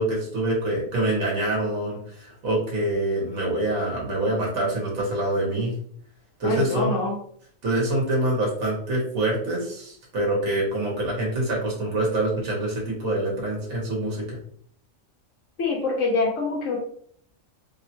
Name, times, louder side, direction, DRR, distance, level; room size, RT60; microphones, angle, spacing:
voice 1, 0.0-5.7 6.4-6.9 7.6-14.4, right 1 dB, 85° right, -3 dB, 1.4 m, -25 dB
voice 2, 6.4-7.2 15.6-16.8, left 3 dB, 70° left, -1 dB, 1.0 m, -25 dB
3.4 x 2.1 x 2.7 m, 0.62 s
omnidirectional pair, 1.4 m